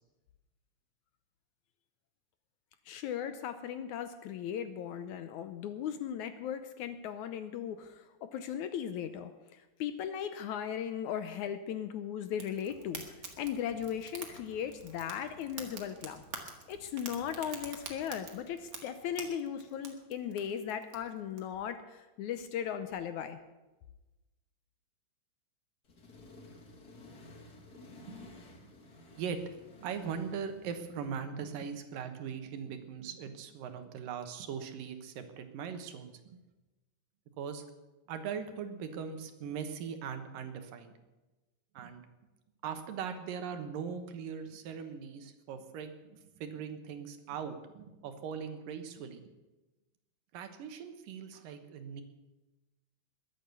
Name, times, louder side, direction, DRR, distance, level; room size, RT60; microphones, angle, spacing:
voice 1, 2.9-13.0 13.4-16.2 16.7-23.4, left 9 dB, 70° left, 10 dB, 1.9 m, -37 dB
Fire, 12.3-21.4, right 4 dB, 35° right, 1.6 m, -47 dB
Accelerating revving vroom, 25.9-31.1, left 2 dB, 35° left, 1.7 m, -54 dB
voice 2, 29.2-29.5 29.8-36.4 37.4-37.6 38.1-40.9 41.7-42.0 42.6-49.3 50.3-52.0, right 7 dB, 80° right, 8 dB, 2.9 m, -40 dB
21.5 x 8.7 x 6.8 m, 1.1 s
omnidirectional pair, 3.9 m